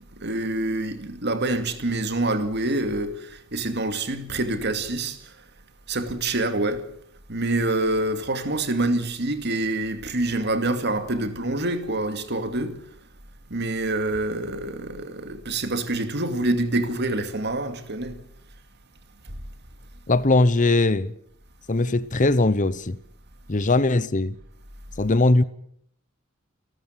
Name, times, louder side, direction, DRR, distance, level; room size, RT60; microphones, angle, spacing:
voice 1, 0.2-5.3 5.9-6.9 7.3-12.8 13.5-18.2, right 2 dB, 55° right, 2.4 m, -26 dB
voice 2, 20.1-21.1 21.7-23.0 23.5-24.4 25.0-25.4, left 2 dB, 40° left, 0.9 m, -20 dB
29.0 x 13.0 x 8.1 m
head